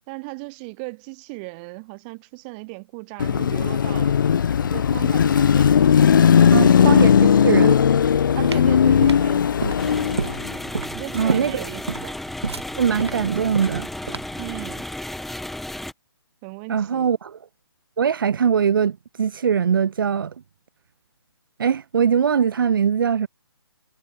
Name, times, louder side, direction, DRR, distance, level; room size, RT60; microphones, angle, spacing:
voice 1, 0.1-4.2 4.6-5.7 6.3-6.8 8.3-9.5 10.9-12.2 14.4-14.9 16.4-17.2, right 31 dB, 20° right, 2.0 m, -36 dB
Car passing by / Traffic noise roadway noise / Engine, 3.2-10.5, left 8 dB, 50° left, 0.8 m, -17 dB
voice 2, 6.5-7.8 11.1-11.7 12.8-13.9 16.7-17.4 18.0-20.3 21.6-23.3, right 7 dB, 55° right, 1.3 m, -21 dB
sound 1, 8.2-14.5, right 4 dB, 90° right, 3.2 m, -29 dB
sound 2, 9.8-15.9, left 1 dB, ahead, 2.8 m, -33 dB
hypercardioid pair, 160°, 14 cm